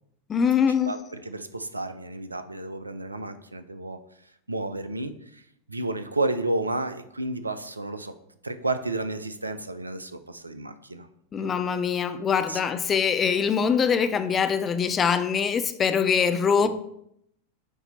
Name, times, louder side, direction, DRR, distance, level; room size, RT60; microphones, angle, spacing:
voice 1, 0.3-0.9 11.3-16.7, left 7 dB, 25° left, 0.4 m, -23 dB
voice 2, 0.8-4.0 4.5-5.4 5.7-8.1 8.4-11.1 11.4-11.7 12.5-12.6 16.6-16.7, right 2 dB, 80° right, 0.4 m, -31 dB
8.1 x 2.7 x 4.3 m
figure-of-eight pair, 90°, 0 cm